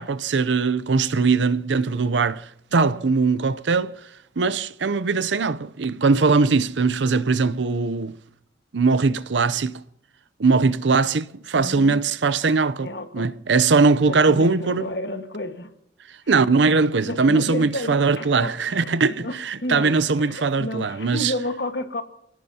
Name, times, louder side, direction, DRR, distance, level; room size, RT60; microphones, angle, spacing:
voice 1, 0.0-3.9 4.4-8.2 8.7-9.7 10.4-12.9 13.1-14.9 16.3-21.3, right 4 dB, 80° right, 0.7 m, -20 dB
voice 2, 2.7-3.1 11.5-12.0 12.8-13.3 14.1-15.7 17.1-19.3 19.6-19.9 20.2-22.0, left 1 dB, 65° left, 1.6 m, -31 dB
28.5 x 17.5 x 2.9 m
head